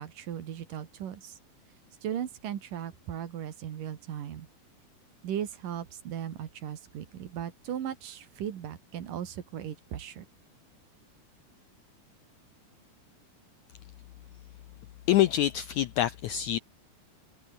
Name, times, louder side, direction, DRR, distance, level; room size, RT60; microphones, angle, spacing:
voice 1, 0.0-1.4 2.0-4.5 5.2-10.2, right 9 dB, 65° right, 3.5 m, -37 dB
voice 2, 15.1-16.6, left 13 dB, 75° left, 1.7 m, -25 dB
omnidirectional pair, 4.2 m